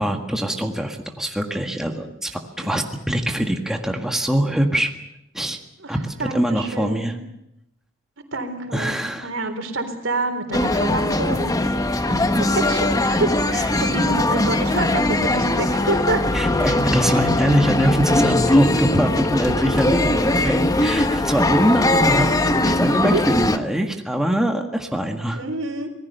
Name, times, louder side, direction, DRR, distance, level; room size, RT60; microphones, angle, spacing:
voice 1, 0.0-4.9 5.3-5.6 5.9-7.2 8.7-9.3 16.3-22.3 22.5-25.4, equal, 5° right, 3 dB, 1.7 m, -23 dB
voice 2, 5.8-7.2 8.3-11.4 12.1-16.2 16.6-16.7 23.0-23.2 25.3-25.9, right 2 dB, 80° right, 7 dB, 3.7 m, -27 dB
sound 1, 10.5-23.6, left 2 dB, 20° left, 1.1 m, -20 dB
26.0 x 19.0 x 6.8 m, 0.82 s
head